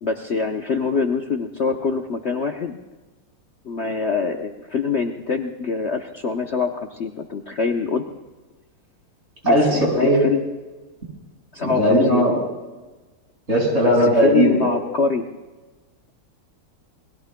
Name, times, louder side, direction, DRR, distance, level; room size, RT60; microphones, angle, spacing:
voice 1, 0.0-2.8 3.6-8.0 9.4-9.9 10.2-10.4 11.5-12.3 13.8-15.2, left 5 dB, 75° left, 3 dB, 0.6 m, -24 dB
voice 2, 9.4-10.3 11.6-12.3 13.5-14.7, equal, 30° right, -2 dB, 5.8 m, -18 dB
28.5 x 21.5 x 2.2 m, 1.2 s
omnidirectional pair, 2.4 m